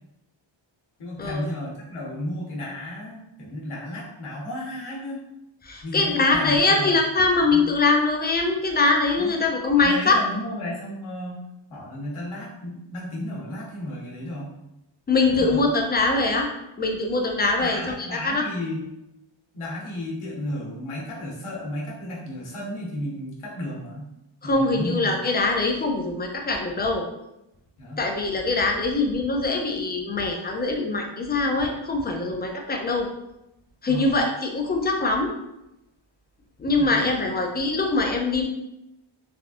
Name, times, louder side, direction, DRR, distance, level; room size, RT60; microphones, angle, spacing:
voice 1, 1.0-5.2 5.8-7.0 7.5-7.6 9.2-9.3 9.8-11.4 11.7-14.5 15.4-15.6 17.4-18.9 19.5-24.1 24.4-25.1 27.8-28.1 33.9-34.1 36.7-37.2, left 1 dB, 85° left, -4 dB, 1.1 m, -33 dB
voice 2, 5.6-10.2 15.1-16.5 16.8-17.8 18.2-18.4 24.4-27.0 28.0-33.1 33.8-35.3 36.6-38.4, left 3 dB, 25° left, 2 dB, 0.3 m, -23 dB
3.4 x 2.4 x 2.5 m, 0.88 s
wide cardioid pair, 125°, 49 cm